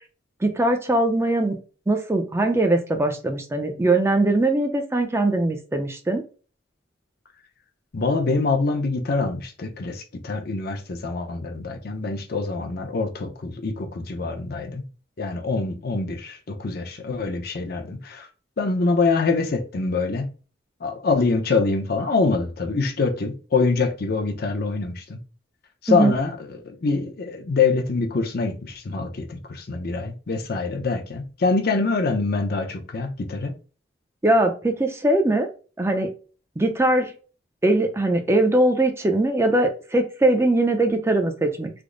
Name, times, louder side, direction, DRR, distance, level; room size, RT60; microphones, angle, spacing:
voice 1, 0.4-1.6 1.9-6.2 25.9-26.1 34.2-35.5 35.8-36.1 36.6-37.1 37.6-41.7, right 2 dB, 15° right, 0.4 m, -21 dB
voice 2, 7.9-14.8 15.2-18.3 18.6-20.3 20.8-25.2 25.8-33.5, left 4 dB, 55° left, 0.6 m, -25 dB
3.4 x 2.0 x 3.7 m
head